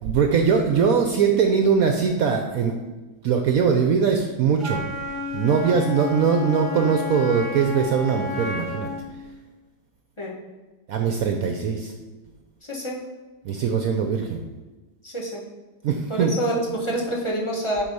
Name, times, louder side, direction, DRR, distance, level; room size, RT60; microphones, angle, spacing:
voice 1, 0.0-2.8 3.2-4.8 5.3-8.9 10.9-11.9 13.4-14.4 15.8-16.3, right 6 dB, 65° right, 4 dB, 1.0 m, -21 dB
Wind instrument woodwind instrument, 4.6-9.1, left 3 dB, 20° right, 1.3 m, -32 dB
voice 2, 12.7-13.0 15.0-15.4 16.1-17.8, right 1 dB, 20° left, -3 dB, 1.2 m, -27 dB
7.7 x 4.2 x 5.4 m, 1.2 s
omnidirectional pair, 1.8 m